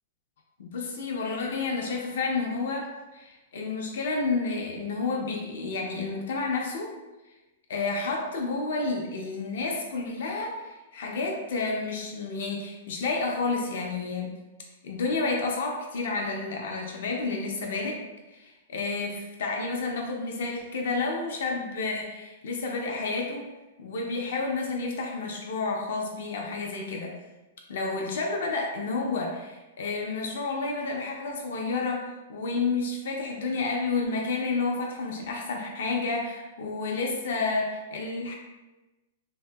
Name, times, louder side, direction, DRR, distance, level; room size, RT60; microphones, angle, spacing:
voice 1, 0.6-6.9 7.7-14.4 14.8-18.0 18.3-23.5 23.8-27.1 27.7-38.3, left 3 dB, 60° left, 0 dB, 0.4 m, -30 dB
2.7 x 2.5 x 2.2 m, 1.1 s
supercardioid pair, 180°, 0 cm